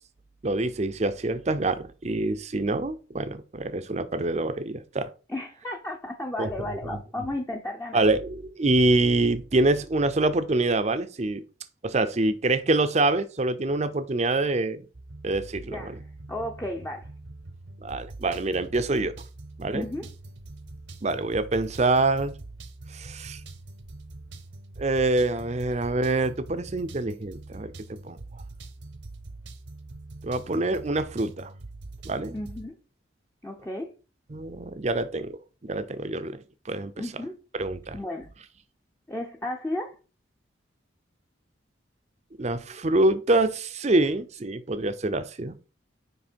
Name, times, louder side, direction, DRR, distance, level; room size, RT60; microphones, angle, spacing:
voice 1, 0.4-5.1 6.4-6.5 7.9-11.4 11.8-14.8 15.2-16.0 17.8-19.1 19.6-19.8 21.0-22.3 22.9-23.4 24.8-27.7 28.0-28.2 30.2-31.5 32.0-32.4 34.3-35.4 35.6-36.4 36.7-36.9 37.6-38.0 42.4-45.6, right 2 dB, 35° right, 0.6 m, -25 dB
voice 2, 5.3-8.0 15.7-17.1 19.7-20.1 32.3-32.7 33.4-33.9 37.0-37.4 37.9-38.3 39.1-40.0, left 1 dB, 10° left, 0.7 m, -33 dB
sound 1, 14.9-32.7, right 2 dB, 70° right, 0.9 m, -43 dB
9.5 x 3.3 x 4.5 m
head